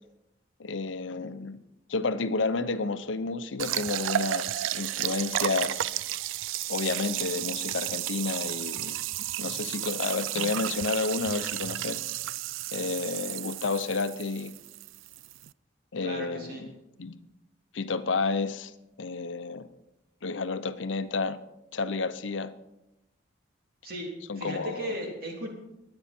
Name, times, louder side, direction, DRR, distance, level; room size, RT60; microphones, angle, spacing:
voice 1, 0.6-1.6 1.9-5.9 6.7-9.0 9.4-12.0 12.7-14.5 15.9-16.7 17.0-17.2 17.7-18.7 19.0-19.7 20.2-21.4 21.7-22.5 24.3-24.9, left 4 dB, 80° left, 11 dB, 0.7 m, -31 dB
sound 1, 3.6-15.5, right 13 dB, 90° right, 0.3 m, -33 dB
voice 2, 16.0-16.6 23.8-25.5, equal, 50° right, 0 dB, 3.3 m, -37 dB
21.5 x 8.7 x 4.4 m, 0.92 s
head